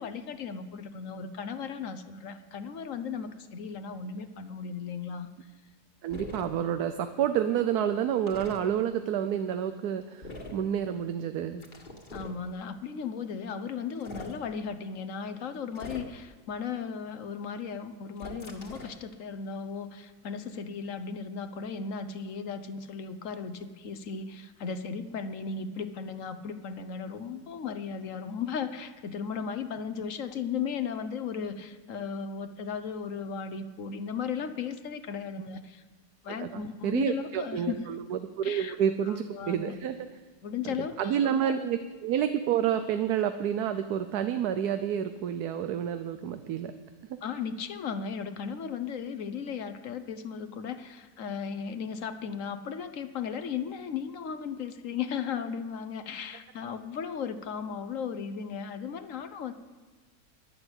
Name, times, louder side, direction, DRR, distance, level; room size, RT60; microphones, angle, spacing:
voice 1, 0.0-5.3 12.1-35.8 36.2-37.9 38.4-38.8 39.0-39.7 40.4-41.5 47.2-59.5, left 6 dB, 60° left, 10 dB, 1.1 m, -36 dB
voice 2, 6.0-11.6 36.3-40.0 41.0-46.7, right 9 dB, 80° right, 9 dB, 1.2 m, -29 dB
sound 1, 6.1-6.5 8.3-8.6 10.2-10.6 11.6-12.4 13.9-14.4 15.7-16.3 18.2-19.0, left 2 dB, 30° left, 1.7 m, -42 dB
11.5 x 11.0 x 8.1 m, 1.3 s
omnidirectional pair, 1.7 m